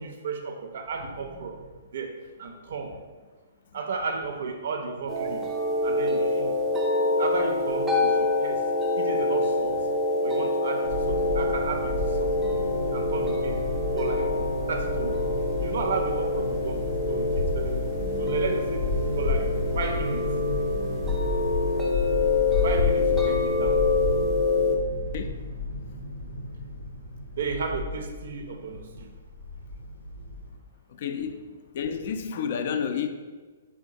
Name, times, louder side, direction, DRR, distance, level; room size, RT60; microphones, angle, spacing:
voice 1, 0.0-1.6 1.9-3.0 3.7-5.5 5.8-6.6 7.2-8.6 9.0-9.9 10.2-12.6 12.9-13.6 13.9-14.3 14.7-15.2 15.6-17.9 18.2-18.9 19.2-19.5 19.8-20.3 22.6-23.8 27.3-29.1, right 4 dB, 60° right, 4 dB, 0.4 m, -33 dB
sound 1, 5.1-24.8, left 2 dB, 10° right, 0.6 m, -26 dB
sound 2, 10.8-30.5, left 3 dB, 85° left, 0.7 m, -31 dB
voice 2, 30.9-31.4 31.7-33.1, left 7 dB, 50° left, 7 dB, 0.4 m, -30 dB
3.8 x 3.4 x 2.6 m, 1.4 s
hypercardioid pair, 130°, 0 cm